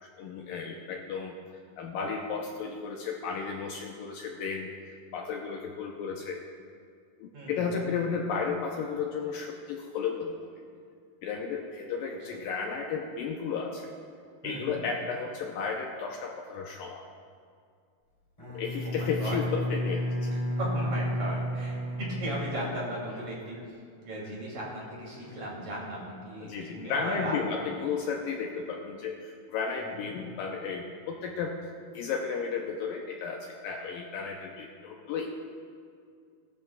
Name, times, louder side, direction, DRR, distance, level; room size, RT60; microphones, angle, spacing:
voice 1, 0.0-1.4 1.8-4.7 5.1-6.4 7.2-10.4 11.2-13.9 14.4-17.0 18.5-20.3 26.4-35.3, left 5 dB, 80° left, 1 dB, 2.2 m, -33 dB
voice 2, 7.3-7.8 12.3-12.4 14.4-14.8 18.9-19.4 20.3-23.6 24.0-27.7 29.9-30.0, right 1 dB, 45° right, -5 dB, 3.8 m, -37 dB
Bowed string instrument, 18.4-23.1, left 1 dB, 10° left, 2.7 m, -32 dB
20.0 x 12.5 x 2.4 m, 2.3 s
omnidirectional pair, 4.6 m